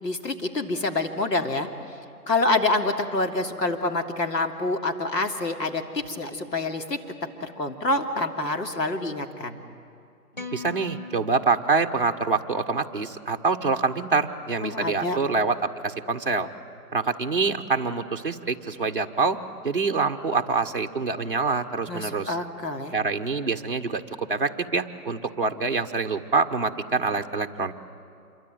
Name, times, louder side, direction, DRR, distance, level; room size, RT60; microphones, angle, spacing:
voice 1, 0.0-1.7 2.3-7.0 7.4-9.6 14.6-15.2 21.9-22.9, left 2 dB, 85° left, 3 dB, 3.1 m, -27 dB
sound 1, 10.3-12.7, left 5 dB, 30° left, 0.8 m, -41 dB
voice 2, 10.5-16.5 16.9-19.4 19.6-22.3 22.9-27.7, right 4 dB, 35° right, 4 dB, 1.2 m, -26 dB
27.0 x 23.5 x 9.2 m, 2.5 s
hypercardioid pair, 175°, 48 cm